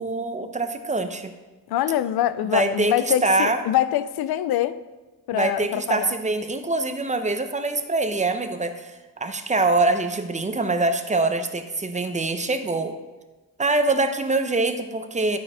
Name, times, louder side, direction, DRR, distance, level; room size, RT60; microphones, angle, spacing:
voice 1, 0.0-1.3 2.4-3.6 5.3-8.9 9.2-12.9 13.6-15.4, right 2 dB, 20° right, 0.6 m, -24 dB
voice 2, 1.7-4.8 5.3-6.1, left 12 dB, 80° left, 0.5 m, -24 dB
12.5 x 4.3 x 4.8 m
cardioid pair, 110°, 37 cm